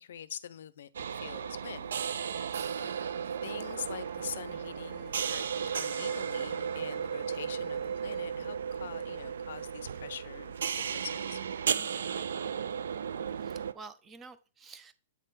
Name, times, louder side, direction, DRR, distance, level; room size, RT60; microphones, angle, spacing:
voice 1, 0.0-2.9 3.4-11.4, left 9 dB, 75° left, 0.5 m, -45 dB
sound 1, 0.9-13.7, right 7 dB, 80° right, 0.4 m, -35 dB
sound 2, 2.0-8.2, left 11 dB, 25° left, 1.0 m, -60 dB
voice 2, 2.4-3.0 11.7-12.2 13.3-14.9, right 4 dB, 20° right, 0.7 m, -51 dB
8.6 x 3.6 x 4.1 m
hypercardioid pair, 130°, 0 cm